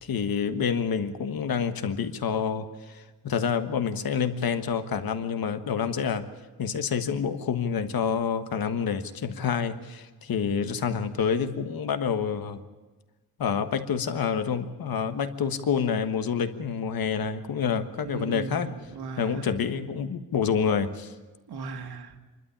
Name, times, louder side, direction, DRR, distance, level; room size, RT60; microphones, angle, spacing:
voice 1, 0.0-6.3 6.6-12.6 13.4-18.7 19.2-21.1, left 7 dB, 70° left, 9 dB, 1.4 m, -28 dB
voice 2, 18.0-19.6 21.5-22.2, right 4 dB, 85° right, 4 dB, 2.2 m, -38 dB
27.0 x 12.5 x 10.0 m, 1.3 s
wide cardioid pair, 170°, 37 cm